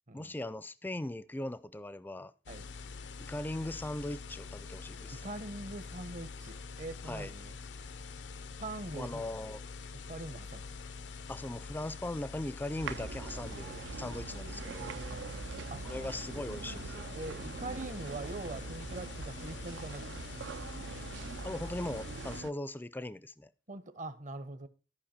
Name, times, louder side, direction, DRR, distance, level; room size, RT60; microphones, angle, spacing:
voice 1, 0.1-2.3 3.2-5.2 7.1-7.3 8.9-9.6 11.3-14.9 15.8-17.1 21.4-23.5, left 1 dB, 10° left, 0.4 m, -39 dB
sound 1, 2.5-22.4, left 4 dB, 85° left, 0.6 m, -45 dB
voice 2, 5.1-7.6 8.6-9.3 9.9-10.7 13.3-13.7 14.8-15.4 15.7-15.9 17.1-20.4 23.7-24.7, right 2 dB, 45° right, 0.9 m, -43 dB
sound 2, 12.8-22.5, right 5 dB, 80° right, 0.5 m, -43 dB
13.0 x 5.4 x 4.3 m
head